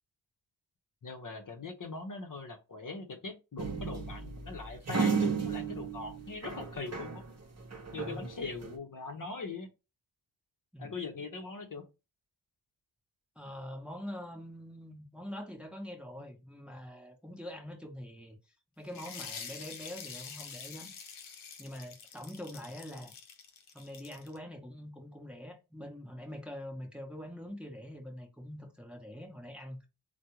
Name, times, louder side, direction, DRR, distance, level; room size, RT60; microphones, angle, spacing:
voice 1, 1.0-7.2 7.9-9.7 10.8-11.9, left 4 dB, 45° left, 0.8 m, -41 dB
sound 1, 3.6-7.3 7.6-8.8, right 6 dB, 35° right, 0.9 m, -34 dB
voice 2, 7.9-8.3 10.7-10.9 13.4-18.4 18.8-20.9 21.6-23.1 23.7-29.9, left 1 dB, ahead, 1.0 m, -44 dB
sound 2, 18.9-24.4, left 6 dB, 85° left, 0.7 m, -46 dB
3.5 x 2.2 x 2.9 m
cardioid pair, 50°, 47 cm